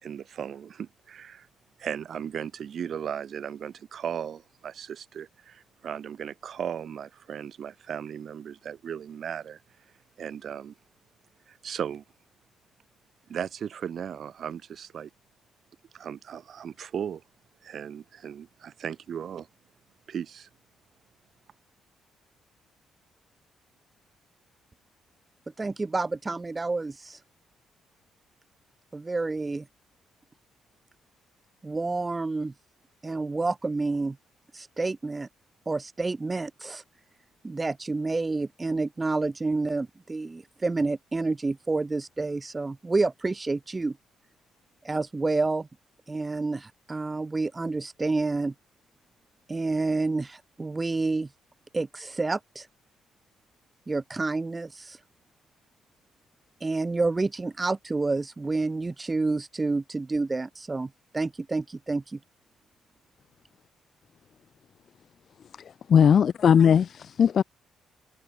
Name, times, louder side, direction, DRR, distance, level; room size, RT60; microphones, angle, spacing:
voice 1, 0.0-1.5 1.8-9.6 10.2-10.7 11.5-12.0 13.3-15.1 15.9-17.2 17.6-19.5 20.1-20.5, right 8 dB, 60° right, 3.9 m, -36 dB
voice 2, 25.6-27.2 28.9-29.6 31.6-32.5 33.0-34.2 34.5-35.3 35.7-36.8 37.4-44.0 44.8-45.7 46.1-48.5 49.5-51.3 51.7-52.7 53.9-55.0 56.6-62.2, right 3 dB, 20° right, 0.6 m, -29 dB
voice 3, 65.9-67.4, left 8 dB, 55° left, 0.4 m, -19 dB
cardioid pair, 90°, 0 cm